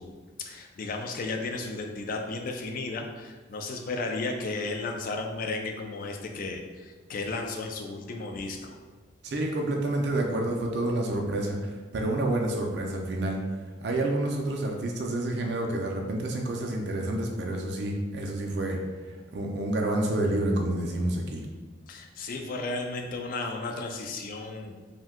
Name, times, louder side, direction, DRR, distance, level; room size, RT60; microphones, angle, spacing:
voice 1, 0.0-8.8 21.9-24.8, left 3 dB, 45° left, 3 dB, 0.3 m, -34 dB
voice 2, 9.2-13.4 13.8-18.8 19.3-21.5, right 1 dB, 55° right, 1 dB, 0.4 m, -28 dB
2.6 x 2.2 x 3.5 m, 1.4 s
head